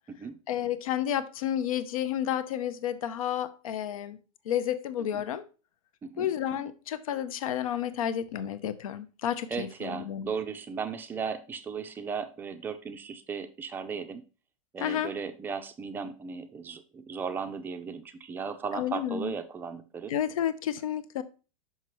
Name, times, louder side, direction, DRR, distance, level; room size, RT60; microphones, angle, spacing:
voice 1, 0.5-4.2 4.5-5.4 6.2-10.3 14.8-15.1 18.7-19.3 20.1-21.2, left 10 dB, 80° left, 0.6 m, -31 dB
voice 2, 9.5-14.2 14.7-20.1, right 6 dB, 10° right, 0.4 m, -36 dB
5.7 x 5.6 x 3.1 m
supercardioid pair, 155°, 18 cm